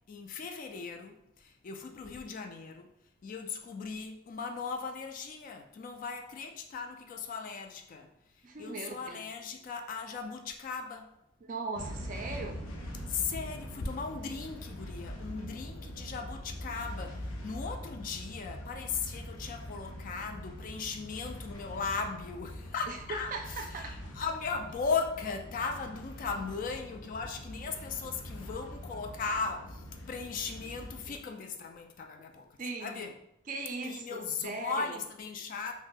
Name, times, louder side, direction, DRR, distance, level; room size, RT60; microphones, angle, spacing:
voice 1, 0.1-2.9 3.2-8.1 8.6-11.1 13.1-23.6 24.1-33.1 33.8-35.7, left 5 dB, 40° left, 4 dB, 0.3 m, -37 dB
voice 2, 8.4-9.2 11.4-12.6 22.9-23.0 23.3-24.0 31.1-31.2 32.6-33.1 33.5-35.0, right 3 dB, 40° right, 3 dB, 0.4 m, -39 dB
sound 1, 11.7-31.2, equal, 90° left, 0.6 m, -43 dB
2.7 x 2.0 x 3.7 m, 0.79 s
head